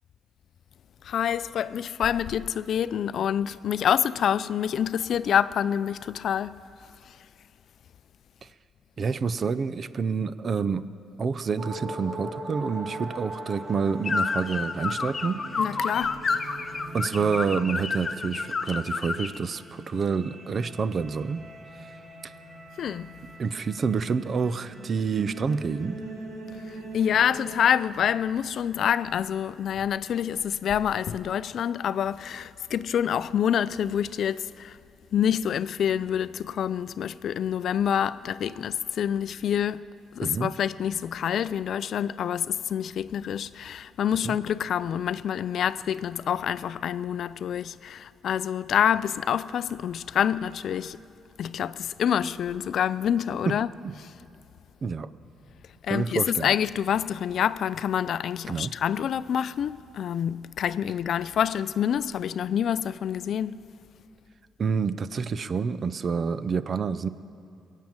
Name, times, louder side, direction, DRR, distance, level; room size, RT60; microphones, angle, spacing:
voice 1, 1.0-6.6 7.1-7.2 15.6-16.2 22.8-23.1 26.7-34.8 35.1-39.8 40.1-51.0 51.4-53.7 55.8-63.6, left 9 dB, 65° left, 0.4 m, -27 dB
voice 2, 9.0-10.9 11.2-15.4 16.9-21.4 22.2-22.3 23.4-26.0 40.2-40.5 44.2-44.3 53.5-53.6 53.8-53.9 54.8-55.1 55.9-56.5 58.5-58.7 64.6-67.1, right 5 dB, 45° right, 0.6 m, -28 dB
sound 1, 11.6-27.5, right 1 dB, 65° right, 4.4 m, -41 dB
sound 2, 14.0-19.4, left 4 dB, 35° left, 0.8 m, -30 dB
21.5 x 7.5 x 8.9 m
cardioid pair, 90°, 0 cm